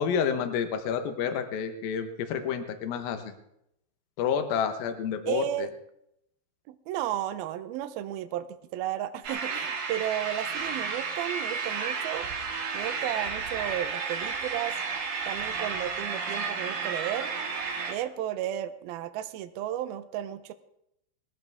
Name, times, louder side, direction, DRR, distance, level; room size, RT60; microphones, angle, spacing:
voice 1, 0.0-3.3 4.2-5.7, left 7 dB, 65° left, 7 dB, 2.6 m, -29 dB
voice 2, 5.3-5.7 6.7-12.3 12.7-14.8 15.3-17.3 17.9-20.5, right 12 dB, 80° right, 10 dB, 2.2 m, -33 dB
sound 1, 9.2-17.9, right 5 dB, 55° right, 2.9 m, -32 dB
20.5 x 14.0 x 3.6 m, 0.79 s
omnidirectional pair, 5.3 m